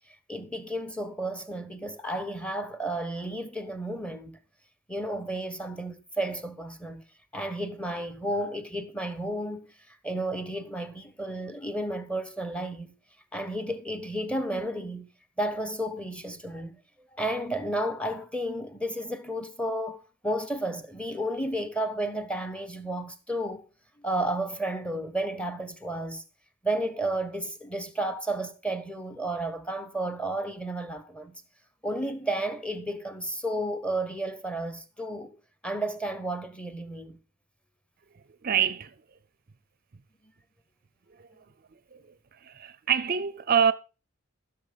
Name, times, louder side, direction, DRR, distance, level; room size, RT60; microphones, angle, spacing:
voice 1, 0.3-4.4 4.9-7.0 7.3-12.9 13.3-15.1 15.4-16.8 17.2-23.7 24.0-26.2 26.6-31.4 31.8-35.4 35.6-37.2, right 1 dB, 5° left, 1.0 m, -32 dB
voice 2, 38.4-38.9 42.4-43.7, right 8 dB, 40° right, 0.5 m, -25 dB
15.0 x 6.7 x 5.1 m
head